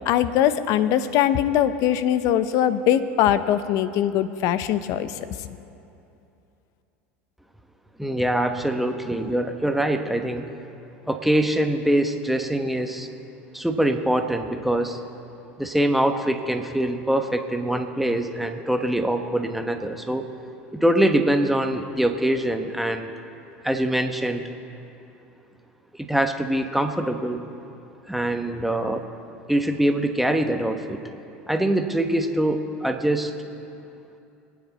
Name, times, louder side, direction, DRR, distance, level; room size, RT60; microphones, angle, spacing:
voice 1, 0.1-5.5, left 10 dB, 60° left, 13 dB, 0.7 m, -22 dB
voice 2, 8.0-10.5 11.1-13.1 13.5-15.0 15.6-20.3 20.7-23.1 23.6-24.5 25.9-27.4 28.1-29.0 29.5-31.0 31.5-33.3, right 1 dB, ahead, 5 dB, 1.2 m, -23 dB
24.0 x 9.5 x 4.2 m, 2.8 s
hypercardioid pair, 80°, 7 cm